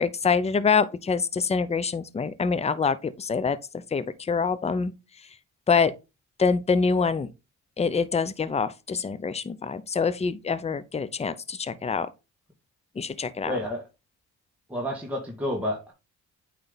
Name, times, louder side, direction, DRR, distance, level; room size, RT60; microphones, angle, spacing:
voice 1, 0.0-3.6 3.9-4.9 5.7-5.9 6.4-7.3 7.8-12.1 13.0-13.5, left 5 dB, 20° left, 0.6 m, -25 dB
voice 2, 13.4-13.9 14.7-15.9, left 1 dB, 5° right, 1.9 m, -30 dB
8.9 x 3.3 x 4.0 m
cardioid pair, 90°, 30 cm